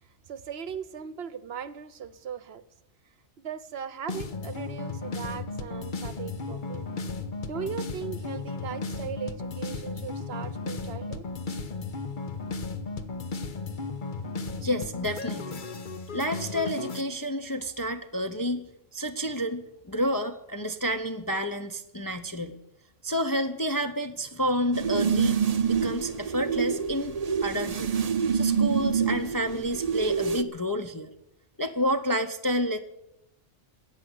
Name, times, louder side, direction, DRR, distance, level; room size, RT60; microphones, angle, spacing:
voice 1, 0.0-2.6 3.4-6.9 7.5-11.2, right 7 dB, 60° right, 16 dB, 1.0 m, -38 dB
sound 1, 4.1-17.0, left 3 dB, 45° left, 1.1 m, -35 dB
voice 2, 14.6-15.6 16.1-18.7 18.9-22.6 23.0-25.4 25.7-27.9 28.3-31.1 31.6-32.8, equal, 20° left, 6 dB, 0.7 m, -29 dB
sound 2, 24.7-30.4, right 6 dB, 40° right, 0.6 m, -26 dB
14.0 x 9.1 x 9.9 m, 0.85 s
omnidirectional pair, 1.3 m